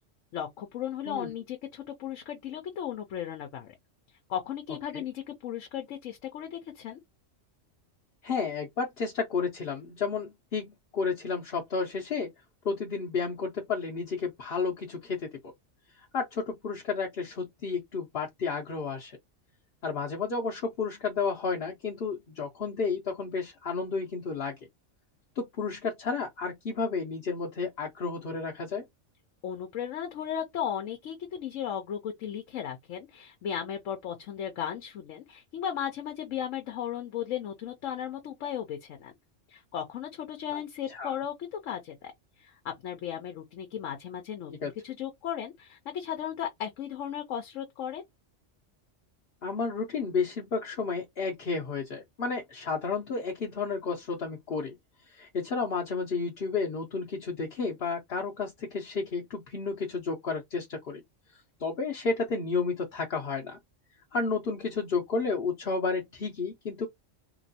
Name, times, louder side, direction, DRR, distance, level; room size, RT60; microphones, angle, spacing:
voice 1, 0.3-3.7 4.3-7.0 29.4-39.1 39.5-42.1 42.4-48.0, left 9 dB, 80° left, 1.1 m, -36 dB
voice 2, 8.2-12.3 12.6-15.5 16.0-19.2 19.8-24.5 25.4-28.8 40.5-40.6 40.9-41.1 44.6-44.7 49.4-54.7 55.1-61.0 61.6-63.6 64.1-66.9, left 4 dB, 55° left, 1.0 m, -32 dB
3.0 x 2.9 x 2.7 m
omnidirectional pair, 1.3 m